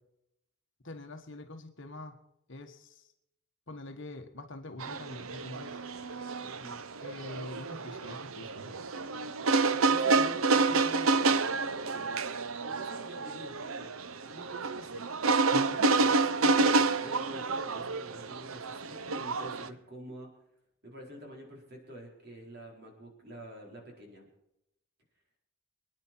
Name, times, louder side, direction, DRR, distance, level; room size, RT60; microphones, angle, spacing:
voice 1, 0.8-2.2 2.5-3.1 3.7-5.8 7.0-8.8 15.5-15.9, left 2 dB, 55° left, 6 dB, 1.5 m, -44 dB
sound 1, 4.8-19.7, right 3 dB, 70° right, 0.8 m, -29 dB
voice 2, 6.4-6.8 9.6-12.1 12.4-13.9 14.3-15.2 15.9-20.3 20.8-24.3, equal, 45° right, 0 dB, 4.5 m, -47 dB
25.5 x 10.0 x 4.5 m, 0.81 s
head